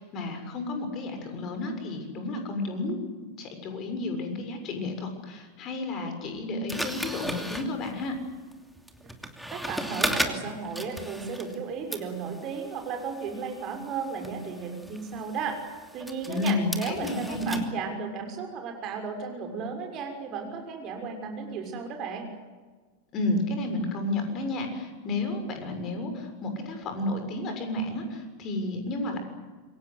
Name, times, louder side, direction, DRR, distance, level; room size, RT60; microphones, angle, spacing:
voice 1, 0.0-3.0 3.2-8.1 16.2-17.6 23.1-29.2, left 2 dB, 35° left, 6 dB, 6.7 m, -31 dB
sound 1, 6.7-11.6 11.9-17.7, equal, ahead, 2.7 m, -36 dB
voice 2, 9.5-15.6 15.9-22.3, right 5 dB, 35° right, 4 dB, 6.3 m, -34 dB
27.5 x 23.5 x 8.3 m, 1.4 s
figure-of-eight pair, 90°, 0 cm